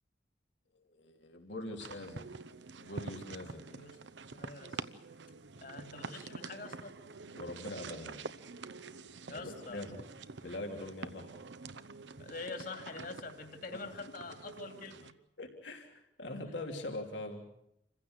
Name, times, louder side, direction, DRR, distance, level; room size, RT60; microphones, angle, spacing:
voice 1, 0.8-2.3 2.8-3.6 7.3-8.2 9.4-10.0 10.4-11.3 15.4-17.4, left 1 dB, 90° left, 2 dB, 3.3 m, -42 dB
sound 1, 1.8-15.1, right 4 dB, 85° right, 0.8 m, -47 dB
voice 2, 3.4-4.0 4.3-4.9 5.6-6.9 9.3-9.8 12.2-15.1, left 3 dB, 50° left, 5 dB, 2.7 m, -45 dB
27.5 x 16.0 x 8.0 m, 0.80 s
head